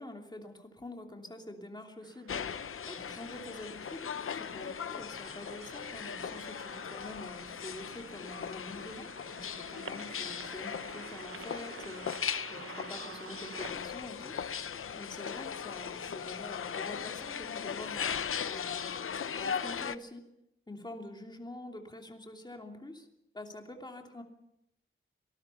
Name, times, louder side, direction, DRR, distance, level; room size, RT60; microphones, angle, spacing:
voice 1, 0.0-14.7 14.9-18.9 19.3-20.3 20.7-23.1 23.3-24.2, left 1 dB, 20° left, 2 dB, 2.9 m, -46 dB
sound 1, 2.0-13.7, right 7 dB, 80° right, 0.7 m, -50 dB
sound 2, 2.3-20.0, left 7 dB, 90° left, 0.7 m, -38 dB
sound 3, 5.0-19.4, equal, 20° right, 4.2 m, -62 dB
25.0 x 19.5 x 5.7 m, 0.81 s
wide cardioid pair, 130°, 21 cm